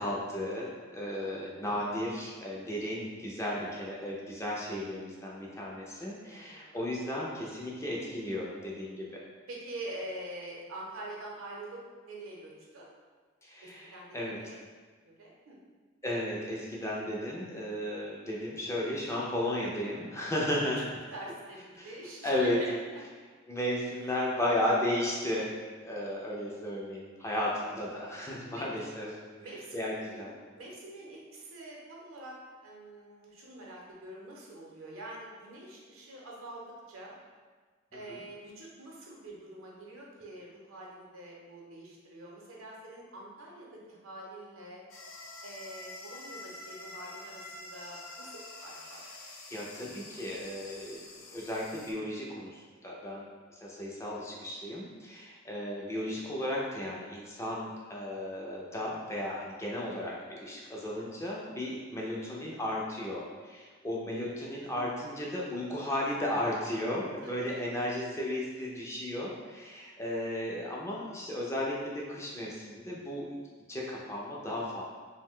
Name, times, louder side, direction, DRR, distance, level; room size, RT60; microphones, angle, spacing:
voice 1, 0.0-9.2 13.4-14.4 16.0-20.8 21.8-21.9 22.2-22.6 23.5-25.5 25.8-29.2 29.7-30.3 38.1-38.2 49.5-73.4 73.7-74.8, left 1 dB, 15° left, -4 dB, 0.3 m, -34 dB
voice 2, 6.2-6.8 9.5-12.9 13.6-14.6 15.0-15.6 20.1-20.3 21.1-23.0 27.3-27.5 28.6-28.9 29.4-29.8 30.1-32.4 32.6-37.1 37.9-44.8 45.4-49.1 67.2-67.7, right 1 dB, 75° right, -3 dB, 0.7 m, -45 dB
sound 1, 44.9-51.9, left 2 dB, 80° left, 0.5 m, -47 dB
2.5 x 2.1 x 3.5 m, 1.5 s
head